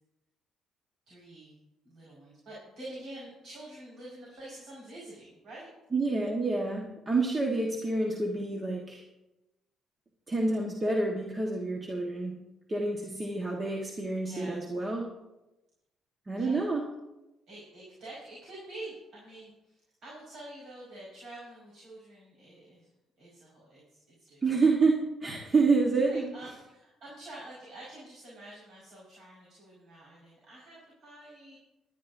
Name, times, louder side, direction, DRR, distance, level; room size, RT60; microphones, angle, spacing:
voice 1, 1.1-1.6 1.8-5.7 14.2-14.6 16.3-16.7 17.5-22.9 23.2-24.4 25.4-25.6 26.1-31.6, right 1 dB, 60° right, -6 dB, 5.2 m, -47 dB
voice 2, 5.9-9.0 10.3-12.3 12.7-15.1 16.3-16.9 24.4-26.3, right 3 dB, 30° right, 0 dB, 1.5 m, -28 dB
20.0 x 11.0 x 2.7 m, 0.99 s
cardioid pair, 95°, 0 cm